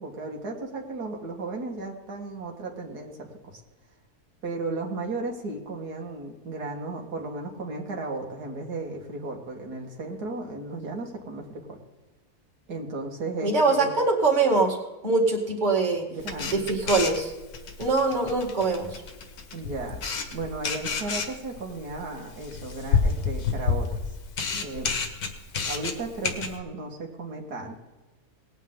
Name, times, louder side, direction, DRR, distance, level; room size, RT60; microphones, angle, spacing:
voice 1, 0.0-3.6 4.4-11.8 12.7-13.9 16.1-16.6 19.5-20.0 20.3-24.0 24.5-24.9 25.6-27.8, right 3 dB, 90° right, 1 dB, 2.2 m, -35 dB
voice 2, 13.4-14.8 15.0-16.1 16.5-17.3 17.8-19.0, right 3 dB, 30° right, 0 dB, 2.2 m, -23 dB
Camera, 16.2-26.6, left 5 dB, 75° left, 1.7 m, -30 dB
19.0 x 9.1 x 3.7 m, 1.1 s
omnidirectional pair, 1.6 m